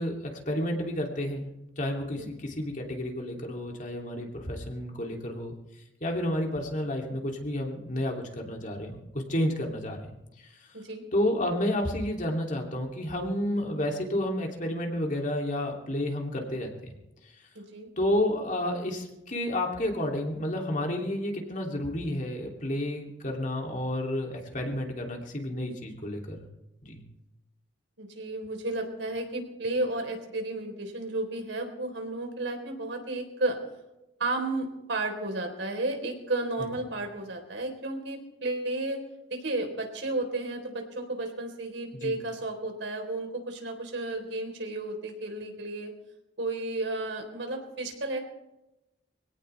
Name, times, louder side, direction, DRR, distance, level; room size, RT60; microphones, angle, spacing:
voice 1, 0.0-1.5 1.8-5.5 6.0-10.2 10.4-10.5 11.1-16.9 18.0-26.5 26.8-27.0 36.6-36.7 42.0-42.2, left 1 dB, 45° left, 1 dB, 2.9 m, -31 dB
voice 2, 17.5-17.9 28.0-33.6 34.2-39.0 39.3-45.9 46.4-48.2, right 2 dB, 80° right, 3 dB, 4.0 m, -33 dB
24.0 x 17.5 x 3.4 m, 0.95 s
head